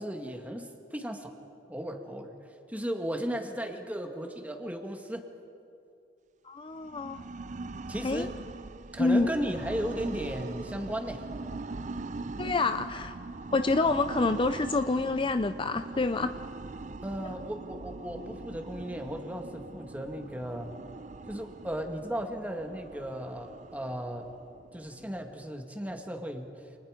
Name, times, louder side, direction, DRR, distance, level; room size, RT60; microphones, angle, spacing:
voice 1, 0.0-1.4 1.7-2.3 2.7-5.3 7.9-8.3 8.9-11.2 17.0-20.7 21.3-24.3 24.7-26.8, equal, 10° right, 3 dB, 2.2 m, -35 dB
voice 2, 6.4-7.2 8.0-8.3 9.0-9.3 12.4-13.1 13.5-16.4, left 3 dB, 30° left, 10 dB, 0.5 m, -27 dB
sound 1, 6.7-25.5, right 3 dB, 40° right, 0.6 m, -42 dB
29.0 x 27.5 x 5.2 m, 2.5 s
head